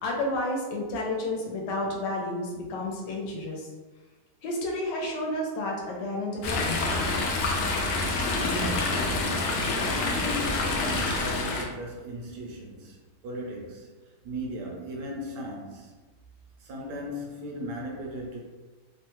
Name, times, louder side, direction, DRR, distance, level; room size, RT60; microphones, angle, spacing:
voice 1, 0.0-3.7 4.4-6.8, left 1 dB, 70° left, -1 dB, 1.2 m, -31 dB
Chatter / Stream, 6.4-11.6, left 3 dB, 90° left, 0.8 m, -27 dB
voice 2, 8.1-16.0 16.6-18.4, equal, 70° right, -1 dB, 1.1 m, -37 dB
3.2 x 2.2 x 2.9 m, 1.2 s
omnidirectional pair, 2.1 m